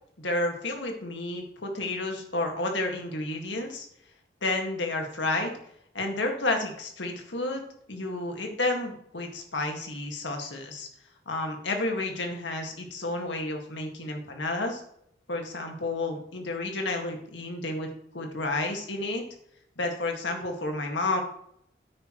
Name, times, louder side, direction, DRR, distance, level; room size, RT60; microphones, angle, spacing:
voice 1, 0.2-3.9 4.4-5.5 5.9-7.6 7.9-10.9 11.3-14.8 15.3-19.2 19.8-21.2, left 2 dB, 85° left, 3 dB, 2.0 m, -31 dB
10.0 x 8.9 x 3.1 m, 0.72 s
head